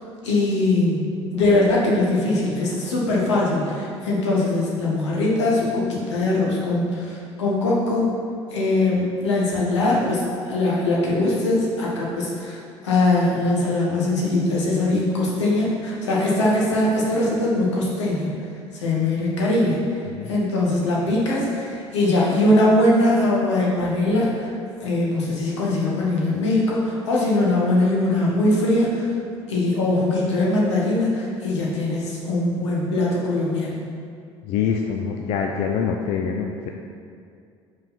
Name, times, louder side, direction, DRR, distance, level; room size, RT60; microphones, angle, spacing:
voice 1, 0.2-1.0 1.3-8.1 8.5-12.6 12.8-18.3 18.7-19.8 20.3-24.5 24.8-29.1 29.5-33.8, left 2 dB, 75° left, -4 dB, 1.2 m, -21 dB
voice 2, 34.4-36.7, left 6 dB, 50° left, 2 dB, 0.4 m, -25 dB
5.4 x 3.9 x 5.8 m, 2.3 s
figure-of-eight pair, 55°, 15 cm